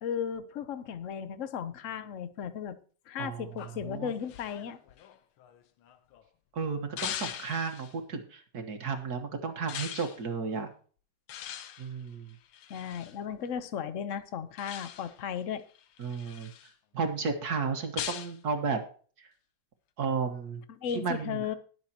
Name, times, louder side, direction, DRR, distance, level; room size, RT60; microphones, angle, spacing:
voice 1, 0.0-2.8 3.1-4.8 12.7-15.6 20.7-21.5, left 8 dB, 60° left, 12 dB, 0.8 m, -35 dB
sound 1, 3.6-6.2 7.0-8.0 9.7-10.2 11.3-13.2 14.6-15.2 15.8-16.7 18.0-18.4, left 10 dB, 85° left, 1.7 m, -41 dB
voice 2, 6.5-10.7 11.8-12.3 16.0-16.5 16.9-18.8 19.2-19.3 20.0-20.6 20.9-21.4, right 5 dB, 50° right, 5 dB, 1.8 m, -33 dB
19.5 x 7.3 x 2.9 m, 0.41 s
omnidirectional pair, 2.3 m